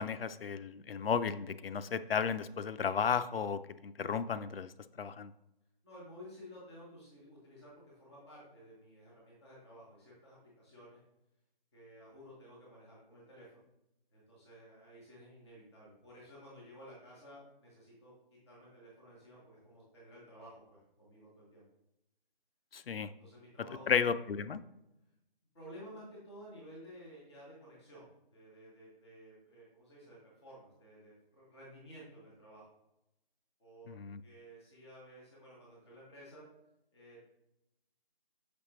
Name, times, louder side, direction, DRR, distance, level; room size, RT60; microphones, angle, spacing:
voice 1, 0.0-4.7 5.0-5.3 22.7-23.1 23.9-24.6 33.9-34.2, left 6 dB, 70° left, 12 dB, 0.4 m, -33 dB
voice 2, 5.8-11.0 11.7-13.6 14.1-21.6 23.2-24.2 25.5-32.7 33.6-36.5 36.9-37.2, equal, ahead, -5 dB, 0.6 m, -54 dB
6.4 x 5.2 x 2.9 m, 0.86 s
figure-of-eight pair, 160°, 30 cm